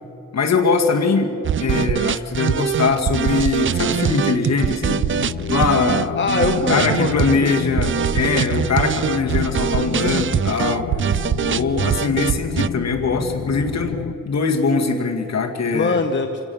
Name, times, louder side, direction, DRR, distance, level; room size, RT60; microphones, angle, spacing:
voice 1, 0.3-5.0 5.5-6.2 6.7-10.9 11.4-16.0, left 4 dB, 60° left, 3 dB, 2.0 m, -21 dB
sound 1, 1.4-12.7, right 8 dB, 40° right, 0.4 m, -22 dB
sound 2, 4.8-14.1, left 8 dB, 85° left, 0.8 m, -30 dB
voice 2, 6.2-7.5 15.7-16.5, left 3 dB, 40° left, 4 dB, 1.1 m, -22 dB
27.5 x 17.0 x 7.0 m, 3.0 s
wide cardioid pair, 135°, 30 cm